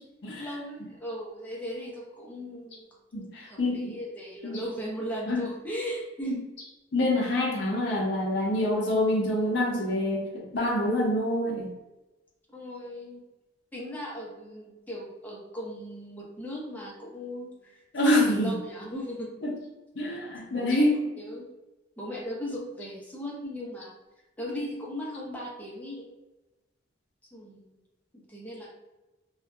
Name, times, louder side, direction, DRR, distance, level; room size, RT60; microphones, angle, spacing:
voice 1, 0.4-2.8 3.1-6.3 12.5-13.2 13.7-19.4 20.4-20.8 21.2-21.5 22.0-24.0 24.4-26.1 27.3-27.8 28.1-28.7, equal, 10° left, -4 dB, 0.6 m, -38 dB
voice 2, 3.1-4.0 4.4-4.6 5.3-5.5 6.2-6.4 6.9-11.7 17.9-18.5 19.4-19.5 20.0-20.9, left 1 dB, 70° left, -2 dB, 0.6 m, -26 dB
2.6 x 2.2 x 2.3 m, 1.0 s
head